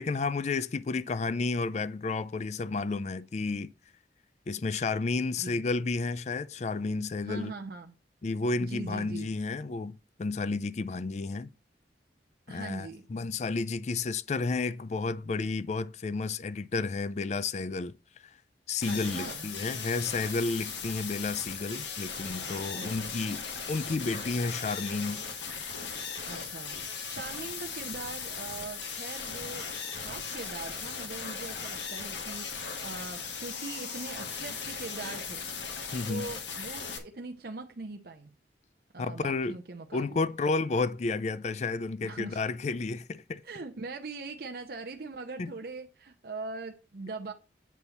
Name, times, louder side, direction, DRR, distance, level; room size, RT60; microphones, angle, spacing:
voice 1, 0.0-3.7 4.5-7.5 8.2-11.5 12.5-17.9 18.7-23.4 23.7-25.2 35.9-36.3 39.0-39.6 39.9-43.4 45.4-45.5, left 3 dB, 40° left, 0.4 m, -31 dB
voice 2, 7.2-7.9 8.6-9.3 12.5-13.1 18.9-19.5 22.7-23.1 26.3-26.8 27.1-29.7 30.0-35.4 36.1-38.4 38.9-40.3 42.0-42.4 43.4-47.3, right 3 dB, 55° right, 0.7 m, -41 dB
sound 1, 18.8-37.0, left 5 dB, 85° left, 1.7 m, -38 dB
8.3 x 4.1 x 7.0 m
head